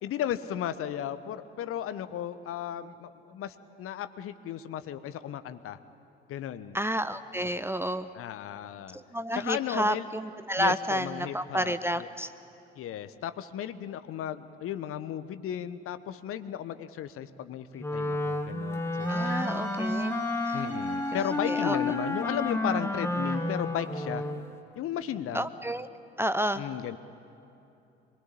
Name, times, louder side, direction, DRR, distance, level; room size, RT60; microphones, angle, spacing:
voice 1, 0.0-5.8 6.3-6.8 8.1-9.0 9.3-10.1 10.6-12.1 12.7-19.3 20.5-24.3 24.8-25.5 26.6-27.0, left 10 dB, 45° left, 12 dB, 1.1 m, -35 dB
voice 2, 6.7-8.1 8.9-12.3 19.1-20.1 20.4-20.6 21.5-21.8 25.3-25.9 26.2-26.6, equal, 10° right, 12 dB, 0.7 m, -30 dB
Wind instrument woodwind instrument, 17.8-24.5, left 2 dB, 10° left, 1.7 m, -30 dB
Wind instrument woodwind instrument 2, 19.0-24.6, right 5 dB, 40° right, 5.9 m, -46 dB
25.0 x 22.5 x 8.5 m, 2.8 s
figure-of-eight pair, 50°, 30 cm